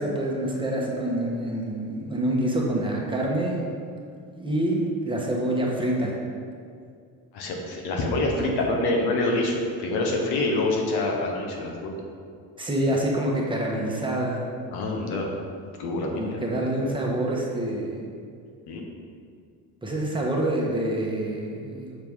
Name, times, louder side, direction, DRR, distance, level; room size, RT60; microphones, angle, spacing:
voice 1, 0.0-3.6 4.3-6.1 8.4-8.5 12.6-14.5 16.2-18.0 19.8-22.0, right 1 dB, 15° right, -2 dB, 1.0 m, -26 dB
voice 2, 7.3-12.0 14.7-15.3 15.6-16.4 18.7-18.8, left 2 dB, 85° left, 0 dB, 1.2 m, -26 dB
6.8 x 4.6 x 3.6 m, 2.3 s
cardioid pair, 120°, 37 cm